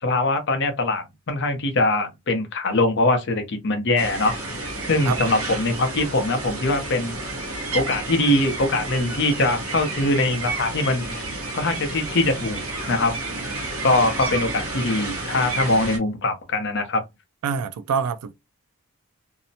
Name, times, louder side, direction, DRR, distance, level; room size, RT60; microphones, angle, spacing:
voice 1, 0.0-4.3 4.9-7.2 7.7-11.2 11.5-12.6 12.9-13.1 13.8-17.0, left 2 dB, 55° left, 0.7 m, -22 dB
sound 1, 4.0-16.0, right 2 dB, 65° right, 0.9 m, -31 dB
voice 2, 17.4-18.3, right 6 dB, 85° right, 0.4 m, -25 dB
2.7 x 2.1 x 2.7 m
head